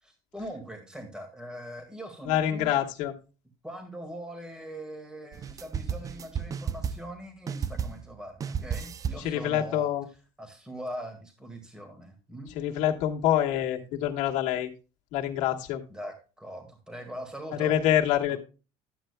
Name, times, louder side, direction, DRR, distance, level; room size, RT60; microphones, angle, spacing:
voice 1, 0.0-2.8 3.6-9.9 10.4-12.5 15.9-17.7 18.3-18.4, equal, 5° right, 5 dB, 1.9 m, -41 dB
voice 2, 2.3-3.1 9.2-10.0 12.5-14.7 15.1-15.8 17.6-18.4, left 11 dB, 75° left, 0 dB, 1.5 m, -26 dB
sound 1, 5.3-7.2 7.5-8.1 8.4-9.3, right 7 dB, 30° right, 0.4 m, -33 dB
11.5 x 8.8 x 2.2 m, 0.32 s
cardioid pair, 130°, 13 cm